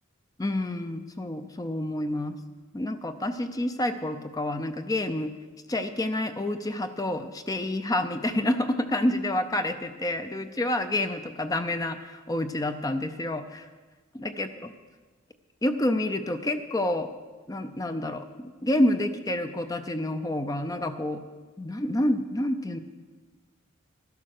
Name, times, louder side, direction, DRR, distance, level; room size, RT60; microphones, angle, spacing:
voice 1, 0.4-2.4 2.7-5.3 5.7-13.7 14.2-14.7 15.6-17.1 17.5-21.2 21.6-22.8, left 1 dB, 15° left, 9 dB, 0.5 m, -28 dB
12.0 x 12.0 x 6.5 m, 1.3 s
head